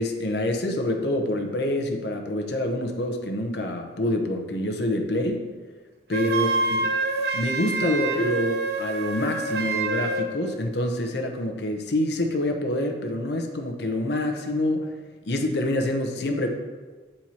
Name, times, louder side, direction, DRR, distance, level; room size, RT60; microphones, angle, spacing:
voice 1, 0.0-5.4 6.1-6.9 7.3-15.0 15.2-16.5, left 1 dB, 65° left, 3 dB, 0.8 m, -26 dB
Wind instrument woodwind instrument, 6.1-10.3, right 3 dB, 55° right, 0.6 m, -27 dB
7.7 x 4.4 x 4.3 m, 1.3 s
head